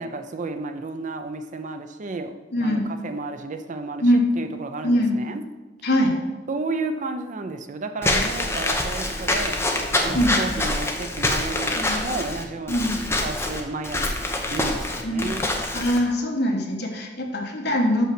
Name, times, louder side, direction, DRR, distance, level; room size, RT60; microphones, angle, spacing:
voice 1, 0.0-2.3 2.6-5.4 6.5-9.6 10.0-12.9 13.2-15.5, right 3 dB, 45° right, 8 dB, 0.5 m, -32 dB
voice 2, 2.5-2.8 4.0-4.3 4.8-5.1 5.8-6.1 10.1-10.4 11.8-12.0 12.7-12.9 15.0-15.3 15.7-18.0, equal, 65° left, 1 dB, 1.3 m, -22 dB
Walk footsteps / Squeak, 8.0-16.0, left 1 dB, 15° left, 0.8 m, -25 dB
6.1 x 5.5 x 5.9 m, 1.2 s
head